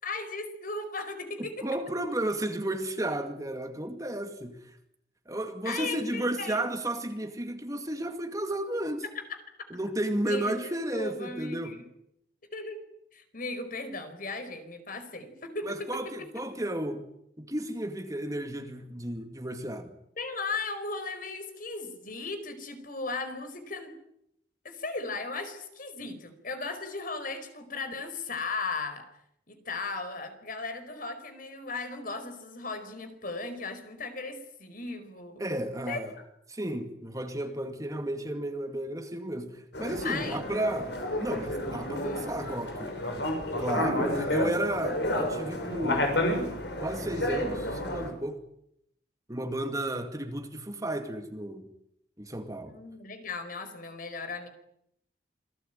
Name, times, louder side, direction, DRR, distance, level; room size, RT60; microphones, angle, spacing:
voice 1, 0.0-1.7 5.6-6.6 10.2-11.9 12.5-12.8 13.1-15.9 20.2-23.9 24.6-29.0 29.5-35.4 35.9-36.2 40.0-40.4 42.0-42.3 52.7-54.5, left 3 dB, 50° left, 4.7 m, -36 dB
voice 2, 1.4-4.8 5.3-9.0 9.7-11.7 15.7-17.1 17.4-19.9 35.4-36.1 36.5-43.0 43.6-46.1 46.8-48.4 49.3-51.7 52.2-52.7, right 1 dB, 20° right, 2.2 m, -33 dB
sound 1, 39.7-48.1, left 1 dB, 65° left, 6.9 m, -31 dB
27.5 x 19.5 x 9.1 m
head